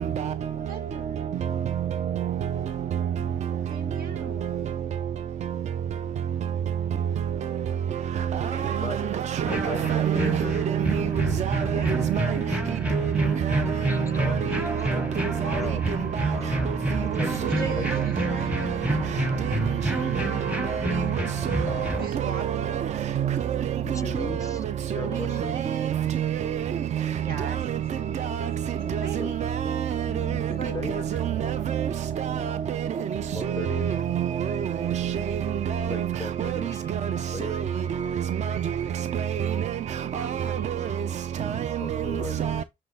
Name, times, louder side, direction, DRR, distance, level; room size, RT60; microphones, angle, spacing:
voice 1, 0.5-1.3 3.5-4.6 8.4-9.2 11.6-12.3 17.4-20.2 22.0-23.5 24.8-25.9 27.1-29.8 30.4-31.9 35.0-35.3 40.1-41.1, right 5 dB, 85° right, 1.7 m, -41 dB
voice 2, 8.3-12.4 12.9-13.1 13.4-13.6 14.2-14.7 15.2-15.6 16.2-16.4 16.7-16.8 17.4-18.3 19.9-21.8 22.2-22.9 23.2-23.6 23.9-24.0 24.4-24.5 25.4-26.6 27.0-27.1 27.4-27.8 28.2-28.5 28.9-29.0 29.4-30.5 31.2-31.9 32.2-32.9 33.5-35.2 35.7-36.1 36.4-36.5 36.9-37.2 37.5-37.6 38.0-38.7 39.1-39.7 40.1-40.6 41.5-41.8 42.4-42.6, right 9 dB, 50° right, 0.4 m, -27 dB
voice 3, 9.4-10.7 13.8-16.0 16.3-16.7 17.1-18.1 21.7-22.0 23.8-24.6 24.9-25.6 29.2-29.4 30.1-31.0 33.3-34.1 35.9-36.9 37.3-37.6 41.8-42.4, left 3 dB, 20° left, 0.4 m, -38 dB
sound 1, 9.4-22.1, equal, 10° right, 0.8 m, -29 dB
7.6 x 3.3 x 4.0 m
cardioid pair, 115°, 15 cm